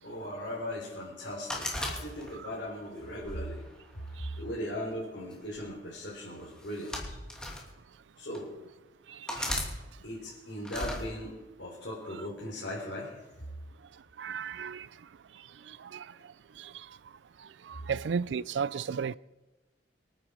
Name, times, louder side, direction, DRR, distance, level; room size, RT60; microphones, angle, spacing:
voice 1, 0.0-3.7 4.3-7.2 8.2-8.5 10.0-11.3 11.6-13.2 16.1-16.2, left 1 dB, 75° left, 4.0 m, -38 dB
sound 1, 1.5-2.6 3.2-4.3 5.3-5.6 6.6-7.6 8.3-8.4 9.3-9.7 10.6-11.0, left 1 dB, 5° left, 2.6 m, -35 dB
voice 2, 14.2-14.9 15.9-16.0 17.7-19.1, right 6 dB, 85° right, 0.4 m, -33 dB
25.0 x 9.2 x 5.0 m
head